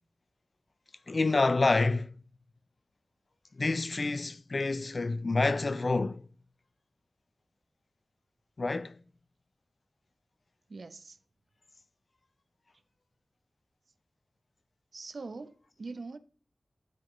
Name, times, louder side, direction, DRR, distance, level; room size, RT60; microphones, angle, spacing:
voice 1, 1.1-2.2 3.6-6.3 8.6-9.0, left 3 dB, 55° left, 0.5 m, -28 dB
voice 2, 10.7-11.2 14.9-16.2, right 3 dB, 75° right, 0.8 m, -42 dB
11.0 x 4.9 x 3.2 m
wide cardioid pair, 55°, 0 cm